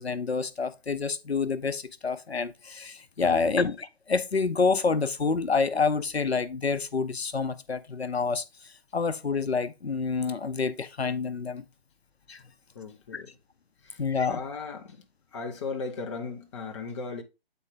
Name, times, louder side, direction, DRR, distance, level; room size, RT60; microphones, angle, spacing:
voice 1, 0.0-11.6 12.3-12.4 13.1-13.2 14.0-14.4, left 4 dB, 90° left, 0.7 m, -28 dB
voice 2, 3.2-3.6 12.7-13.3 13.8-14.0 14.3-15.0 15.3-17.2, left 4 dB, 30° left, 0.9 m, -37 dB
8.1 x 4.4 x 3.6 m
figure-of-eight pair, 145°, 31 cm